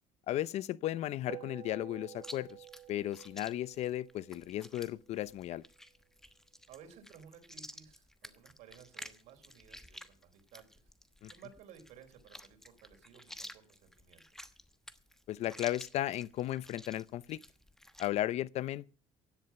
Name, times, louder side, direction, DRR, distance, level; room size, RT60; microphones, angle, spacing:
voice 1, 0.3-2.5 2.9-5.6 11.2-11.3 15.3-17.4 18.0-18.9, left 13 dB, 60° left, 0.6 m, -35 dB
sound 1, 1.3-5.9, right 13 dB, 55° right, 1.3 m, -52 dB
Chewing mastication, 2.2-18.1, left 1 dB, 5° left, 1.1 m, -52 dB
voice 2, 6.7-10.9 11.3-14.5, right 8 dB, 70° right, 3.9 m, -57 dB
16.0 x 11.0 x 5.8 m
cardioid pair, 135°, 13 cm